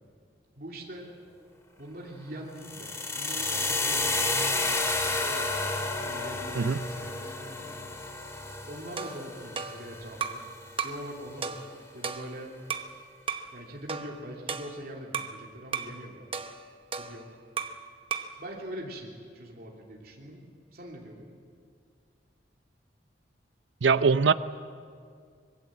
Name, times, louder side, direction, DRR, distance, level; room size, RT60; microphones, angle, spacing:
voice 1, 0.5-1.1 1.8-5.6 5.8-8.2 8.7-10.4 10.8-12.6 13.5-16.3 16.9-17.4 18.4-20.4 20.7-21.3, right 1 dB, 55° right, -2 dB, 3.1 m, -43 dB
Time reversal, 2.6-10.6, left 3 dB, 15° left, 2.2 m, -31 dB
sound 1, 9.0-10.5 10.8-11.1 11.4-12.9 13.3-13.5 13.9-15.4 15.7-16.0 16.3-17.8 18.1-18.4, right 6 dB, 30° right, 1.0 m, -36 dB
voice 2, 23.8-24.3, right 5 dB, 85° right, 13 dB, 0.7 m, -22 dB
24.5 x 21.5 x 7.6 m, 2.1 s
head